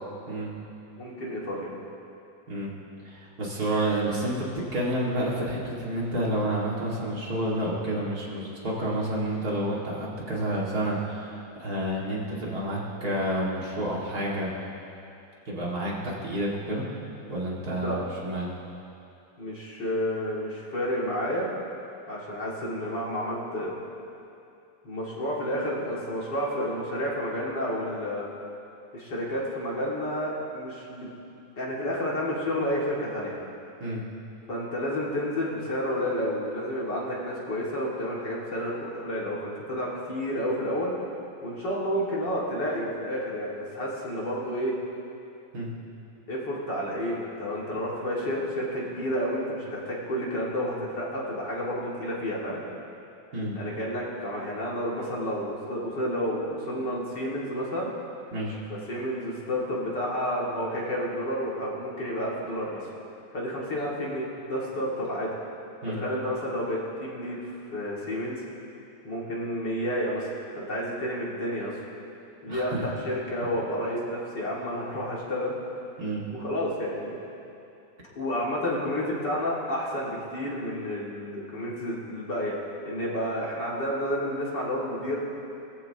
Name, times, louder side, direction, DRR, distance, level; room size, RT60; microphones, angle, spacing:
voice 1, 1.0-1.7 17.7-18.1 19.4-21.5 22.1-23.7 24.8-28.3 28.9-31.1 31.6-33.4 34.5-40.9 41.4-44.7 46.3-52.6 53.6-57.9 58.7-62.9 63.3-65.3 65.9-68.4 69.0-71.8 72.4-75.5 76.3-77.2 78.1-82.5 82.9-85.2, equal, 60° left, -5 dB, 2.9 m, -30 dB
voice 2, 3.0-14.5 15.5-16.8 17.3-18.5 33.8-34.0 45.5-45.7 53.3-53.6 58.3-58.6 65.8-66.0 72.5-72.8 76.0-76.3, right 1 dB, 50° right, -5 dB, 2.6 m, -29 dB
21.5 x 14.5 x 2.9 m, 2.7 s
omnidirectional pair, 2.1 m